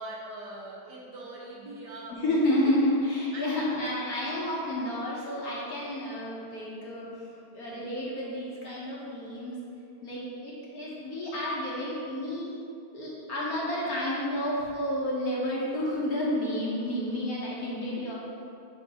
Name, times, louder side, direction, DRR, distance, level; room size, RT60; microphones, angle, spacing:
voice 1, 0.0-2.7 3.3-3.6 4.0-4.3, right 1 dB, 65° right, -4 dB, 1.4 m, -42 dB
voice 2, 2.2-9.6 10.0-12.5 12.9-18.1, left 1 dB, 55° left, -6 dB, 1.4 m, -30 dB
7.3 x 3.4 x 5.5 m, 2.5 s
omnidirectional pair, 2.2 m